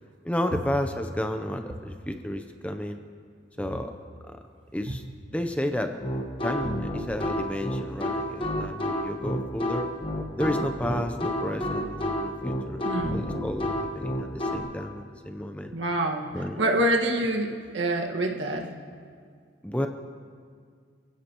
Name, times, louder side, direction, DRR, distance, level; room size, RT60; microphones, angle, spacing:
voice 1, 0.2-3.0 3.6-3.9 4.3-4.4 4.7-5.0 5.3-6.0 6.4-9.9 10.4-15.7 16.3-16.6 19.6-19.9, left 1 dB, 5° left, 6 dB, 0.6 m, -32 dB
sound 1, 6.0-14.6, left 1 dB, 25° left, 1.3 m, -29 dB
voice 2, 12.8-13.3 15.7-18.7, right 1 dB, 75° right, 1 dB, 1.7 m, -26 dB
29.0 x 16.5 x 3.0 m, 2.1 s
head